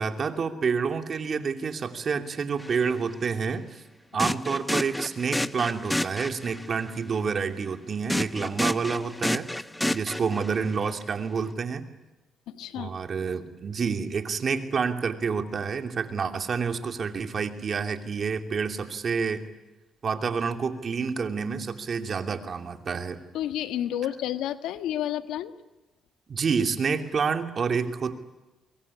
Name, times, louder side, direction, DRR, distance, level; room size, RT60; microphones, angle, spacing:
voice 1, 0.0-3.8 4.1-9.5 9.9-11.8 12.8-19.5 20.0-23.2 26.3-28.2, right 5 dB, 45° right, 7 dB, 2.8 m, -28 dB
sound 1, 2.6-2.8 4.2-6.7 8.1-10.7, left 1 dB, 5° left, 0.9 m, -30 dB
voice 2, 12.5-12.9 23.3-25.5, left 11 dB, 90° left, 10 dB, 1.5 m, -30 dB
24.5 x 23.0 x 9.9 m, 1.1 s
cardioid pair, 90°, 0 cm